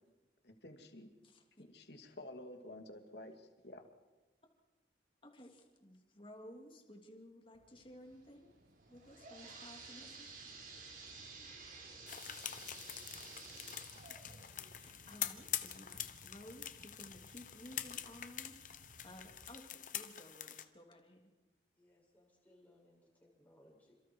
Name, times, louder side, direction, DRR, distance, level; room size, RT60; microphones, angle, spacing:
voice 1, 0.4-1.1 1.6-3.8, left 1 dB, 70° left, 5 dB, 2.6 m, -51 dB
voice 2, 1.2-1.6 5.2-8.6 8.9-10.3 14.1-18.5 19.0-21.3, equal, 30° left, 2 dB, 3.2 m, -56 dB
sound 1, 7.5-19.6, right 2 dB, 70° right, 1.0 m, -63 dB
sound 2, 8.8-16.4 16.9-17.0 17.7-17.8 18.2-18.3, right 4 dB, 45° right, 4.5 m, -53 dB
sound 3, 12.1-20.6, left 11 dB, 45° left, 1.1 m, -45 dB
voice 3, 21.7-23.9, left 1 dB, 10° left, -3 dB, 7.0 m, -66 dB
28.5 x 26.5 x 4.8 m, 1.1 s
head